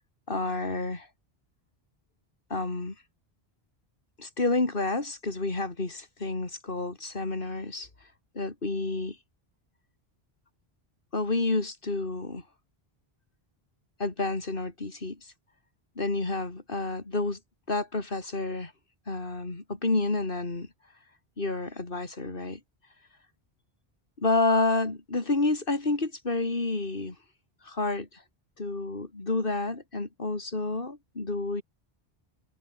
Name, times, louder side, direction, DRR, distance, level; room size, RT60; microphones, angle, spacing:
voice 1, 0.3-1.1 2.5-2.9 4.2-7.9 8.3-9.2 11.1-12.4 14.0-15.3 16.0-17.4 17.7-18.7 19.1-20.7 21.4-22.6 24.2-27.1 27.6-28.2 28.6-31.6, left 2 dB, 60° left, 3.3 m, -29 dB
omnidirectional pair, 1.0 m